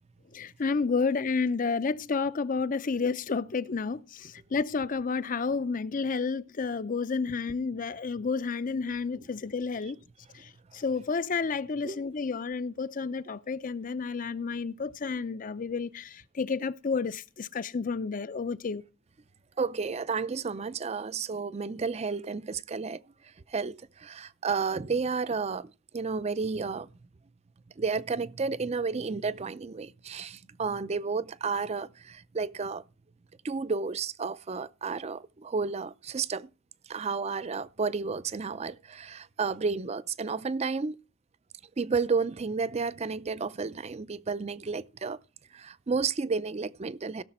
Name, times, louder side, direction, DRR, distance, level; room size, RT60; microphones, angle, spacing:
voice 1, 0.3-10.0 10.7-18.8, left 4 dB, 45° left, 0.5 m, -30 dB
voice 2, 19.6-23.0 23.5-25.7 25.9-26.9 27.8-32.8 33.4-36.5 36.9-41.0 41.8-45.2 45.5-47.2, right 4 dB, 35° right, 0.5 m, -31 dB
16.5 x 6.7 x 4.3 m
head